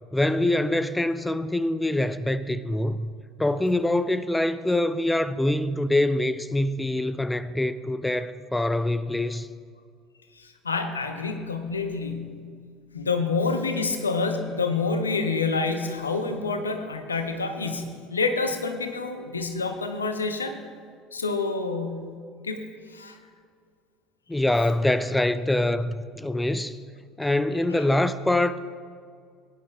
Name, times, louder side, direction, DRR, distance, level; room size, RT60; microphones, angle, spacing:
voice 1, 0.1-3.1 3.4-9.5 24.3-26.8 27.2-28.6, left 1 dB, 10° left, 0.3 m, -24 dB
voice 2, 10.4-12.4 12.9-20.5 21.1-22.1 22.4-22.6 22.9-23.2 27.7-27.8, left 4 dB, 80° left, 0.8 m, -28 dB
18.0 x 10.0 x 2.2 m
figure-of-eight pair, 65°, 0 cm